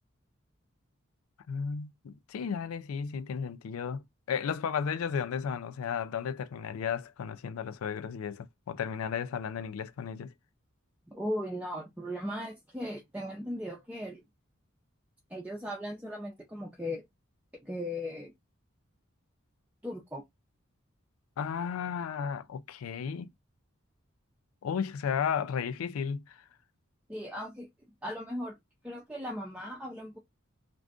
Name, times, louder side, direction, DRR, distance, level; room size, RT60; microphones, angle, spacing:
voice 1, 1.5-10.3 21.4-23.3 24.6-26.4, left 7 dB, 90° left, 0.4 m, -34 dB
voice 2, 11.1-14.2 15.3-17.1 17.6-18.3 19.8-20.2 27.1-27.7 28.0-28.6 28.8-30.2, equal, 5° right, 0.4 m, -37 dB
2.5 x 2.4 x 3.5 m
head